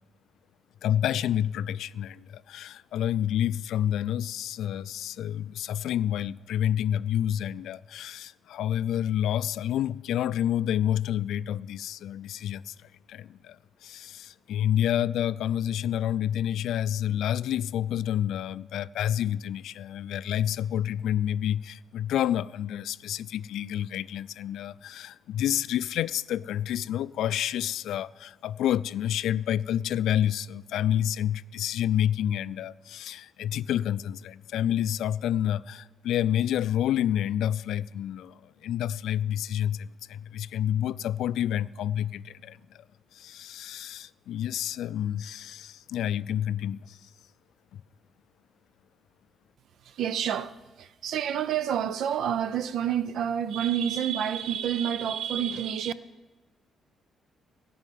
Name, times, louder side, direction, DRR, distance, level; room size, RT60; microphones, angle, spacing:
voice 1, 0.8-12.8 13.1-42.8 43.1-47.1, left 11 dB, 80° left, 0.3 m, -29 dB
voice 2, 49.8-55.9, right 9 dB, 70° right, 0.5 m, -29 dB
15.0 x 5.5 x 9.3 m
cardioid pair, 140°, 0 cm